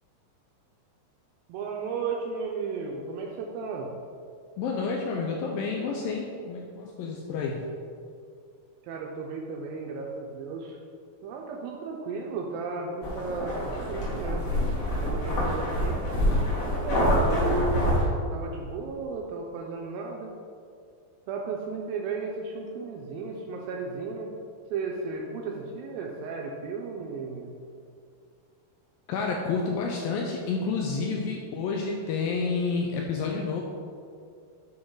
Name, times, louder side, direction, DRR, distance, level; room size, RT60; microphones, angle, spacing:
voice 1, 1.5-3.9 8.8-10.8 11.2-14.5 15.0-16.0 16.7-20.3 21.3-24.3 24.7-27.5, right 4 dB, 85° right, 0 dB, 2.1 m, -34 dB
voice 2, 4.6-7.6 29.1-33.6, left 4 dB, 80° left, 0 dB, 2.1 m, -29 dB
sound 1, 13.0-18.0, equal, 50° left, 2.3 m, -26 dB
8.6 x 3.7 x 4.6 m, 2.2 s
omnidirectional pair, 4.6 m